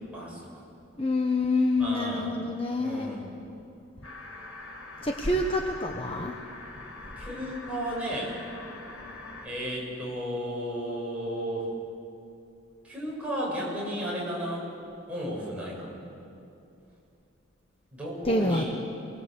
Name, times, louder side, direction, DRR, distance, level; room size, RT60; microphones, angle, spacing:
voice 1, 0.1-0.6 1.8-2.3 2.8-3.3 7.2-8.4 9.4-11.7 12.8-14.7 15.1-16.0 17.9-18.7, equal, 5° right, -6 dB, 7.9 m, -33 dB
voice 2, 1.0-3.1 5.0-6.3 18.2-18.6, left 2 dB, 25° left, 2 dB, 1.1 m, -27 dB
sound 1, 4.0-9.5, left 2 dB, 80° left, 3.9 m, -44 dB
28.5 x 21.0 x 8.3 m, 2.7 s
head